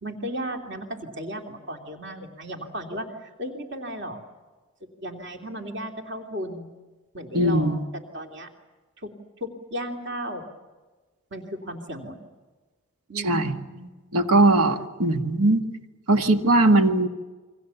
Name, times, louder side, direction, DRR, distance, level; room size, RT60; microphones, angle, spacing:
voice 1, 0.0-4.2 5.0-6.7 7.1-7.8 8.1-8.5 9.0-9.1 9.4-10.5 11.3-12.2 13.1-13.9, equal, 55° right, 2 dB, 2.9 m, -35 dB
voice 2, 7.3-7.8 13.2-13.5 14.1-15.6 16.1-17.1, right 2 dB, 85° right, 5 dB, 1.8 m, -19 dB
29.0 x 24.0 x 7.1 m, 1.3 s
head